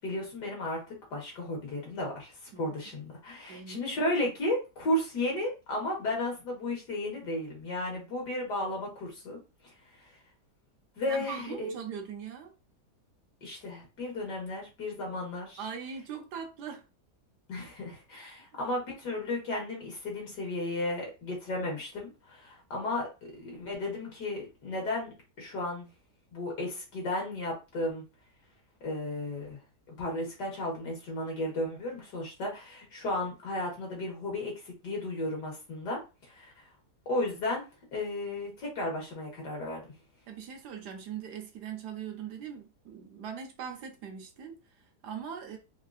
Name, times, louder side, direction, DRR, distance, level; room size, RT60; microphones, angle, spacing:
voice 1, 0.0-9.4 9.6-10.1 11.0-11.7 13.4-15.6 17.5-23.1 23.4-25.9 26.3-28.0 28.8-29.6 29.9-36.7 37.1-37.6 37.9-39.8, left 1 dB, 90° left, 2.2 m, -34 dB
voice 2, 2.5-3.0 3.5-3.8 11.1-12.5 15.6-16.9 18.5-18.7 40.3-45.6, right 7 dB, 85° right, 1.4 m, -41 dB
4.6 x 2.5 x 2.4 m
omnidirectional pair, 1.7 m